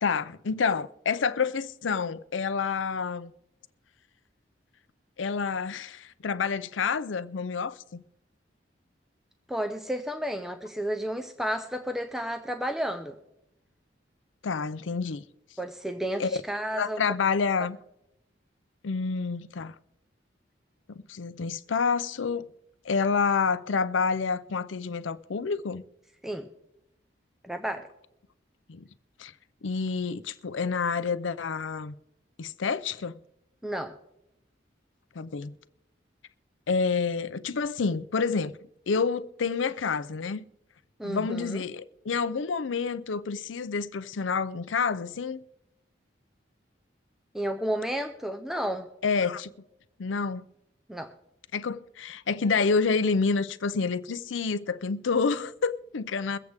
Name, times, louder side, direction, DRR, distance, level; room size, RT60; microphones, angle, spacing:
voice 1, 0.0-3.3 5.2-8.0 14.4-15.2 16.2-16.3 16.8-17.8 18.8-19.7 20.9-22.5 22.8-25.8 28.7-28.8 29.2-29.3 29.6-31.9 32.4-33.2 35.2-35.5 36.7-38.6 38.9-40.4 41.0-45.4 49.0-49.5 50.0-50.4 51.5-56.4, left 5 dB, 90° left, 0.6 m, -28 dB
voice 2, 9.5-13.2 15.6-17.0 17.6-17.7 26.2-26.5 27.4-27.9 33.6-34.0 41.0-41.6 47.3-48.9 50.9-51.1, equal, ahead, 0.6 m, -32 dB
23.0 x 8.0 x 3.5 m
head